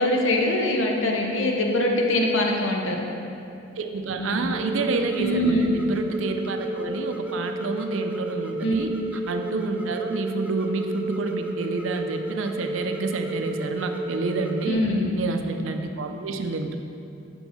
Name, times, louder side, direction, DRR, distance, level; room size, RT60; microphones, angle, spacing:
voice 1, 0.0-3.0 4.2-4.6 5.2-5.7 8.6-8.8 14.7-15.2, left 1 dB, 75° left, 1 dB, 0.8 m, -23 dB
voice 2, 3.8-8.9 9.3-14.8 15.2-16.8, right 3 dB, 80° right, 6 dB, 0.5 m, -28 dB
sound 1, 4.5-14.7, right 1 dB, 5° right, 0.3 m, -32 dB
5.7 x 4.4 x 5.6 m, 2.7 s
head